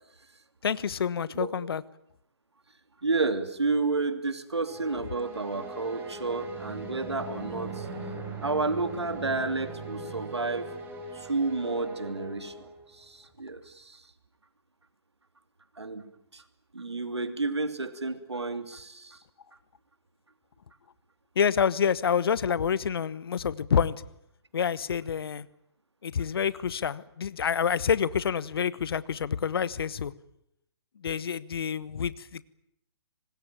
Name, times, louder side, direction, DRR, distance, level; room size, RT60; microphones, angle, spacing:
voice 1, 0.6-1.8 21.3-24.0 24.5-25.5 26.0-30.1 31.0-32.4, left 7 dB, 65° left, 1.2 m, -27 dB
voice 2, 3.0-7.9 8.4-10.7 11.1-14.0 15.8-16.0 16.3-16.4 16.7-19.2, right 3 dB, 90° right, 2.9 m, -31 dB
sound 1, 4.6-13.0, right 2 dB, 15° right, 5.5 m, -40 dB
25.5 x 20.0 x 9.0 m
figure-of-eight pair, 135°, 14 cm